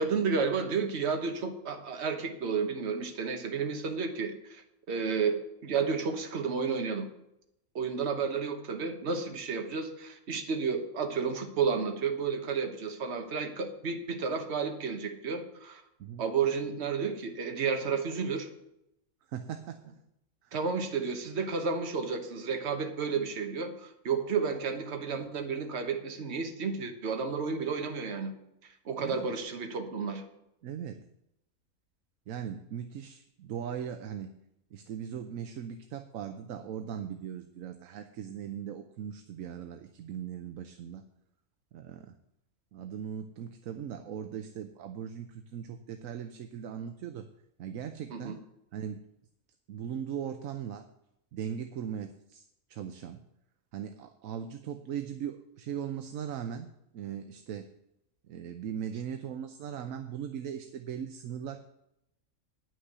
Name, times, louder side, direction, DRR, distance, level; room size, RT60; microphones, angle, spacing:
voice 1, 0.0-7.1 7.7-15.8 16.2-18.5 20.5-28.3 28.8-30.2 48.1-48.4, right 5 dB, 50° right, 5 dB, 1.4 m, -32 dB
voice 2, 19.3-19.8 20.4-20.6 29.0-29.3 30.6-31.0 32.3-34.4 34.7-41.0 41.7-42.2 42.7-47.3 47.6-48.4 48.7-49.0 49.7-50.9 51.3-53.2 53.7-56.7 56.9-57.7 58.3-61.6, right 8 dB, 70° right, 8 dB, 1.1 m, -39 dB
9.8 x 6.4 x 8.0 m, 0.82 s
omnidirectional pair, 1.6 m